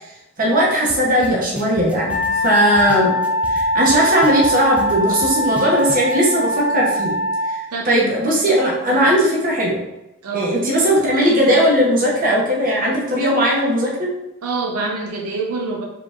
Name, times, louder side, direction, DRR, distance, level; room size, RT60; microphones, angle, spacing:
voice 1, 0.4-3.2 3.5-7.1 7.5-9.8 10.3-14.1, equal, 40° right, -3 dB, 0.9 m, -18 dB
sound 1, 0.9-1.0 1.2-3.6 3.9-6.1, equal, 5° right, 0.4 m, -34 dB
Wind instrument woodwind instrument, 2.0-7.6, equal, 45° left, 0.5 m, -21 dB
voice 2, 10.2-10.6 14.4-15.8, right 3 dB, 85° right, 0 dB, 0.6 m, -26 dB
4.5 x 3.5 x 2.5 m, 0.91 s
head